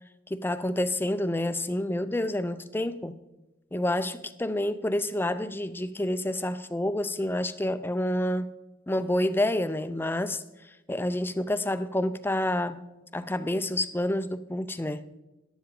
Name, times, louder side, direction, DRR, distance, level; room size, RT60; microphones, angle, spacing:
voice 1, 0.3-3.1 3.7-8.5 8.9-10.4 10.9-12.8 13.1-15.1, left 1 dB, 10° left, 0.5 m, -28 dB
14.5 x 11.5 x 3.8 m
head